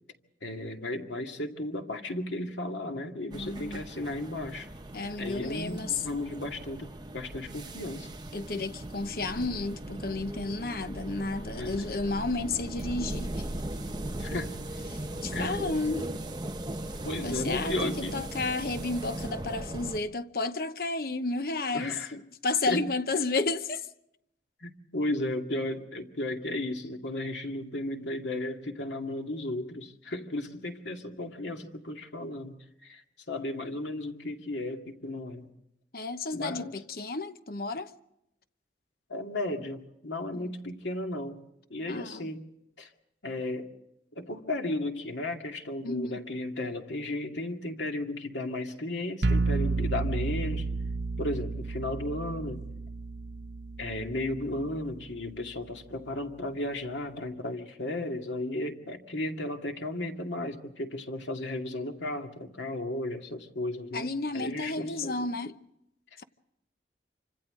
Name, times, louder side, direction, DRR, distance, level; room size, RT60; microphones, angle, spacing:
voice 1, 0.4-4.7 5.2-6.9 7.1-8.1 11.6-12.0 14.2-14.5 15.3-15.8 17.0-18.2 21.7-22.1 22.7-22.8 24.6-35.5 36.3-36.8 39.1-41.4 41.7-42.5 42.8-42.9 43.2-43.7 44.2-50.7 51.2-52.7 53.8-64.1 64.3-65.3, left 1 dB, 90° left, 2.3 m, -34 dB
voice 2, 3.2-3.8 4.9-6.0 8.3-13.5 14.9-16.1 17.2-23.9 35.9-37.9 40.3-40.5 41.9-42.3 45.8-46.2 63.9-65.5, left 3 dB, 55° left, 0.9 m, -32 dB
sound 1, 3.3-20.0, right 1 dB, 25° right, 1.1 m, -38 dB
sound 2, 49.2-55.0, right 3 dB, 70° right, 0.9 m, -31 dB
27.5 x 25.5 x 3.8 m
head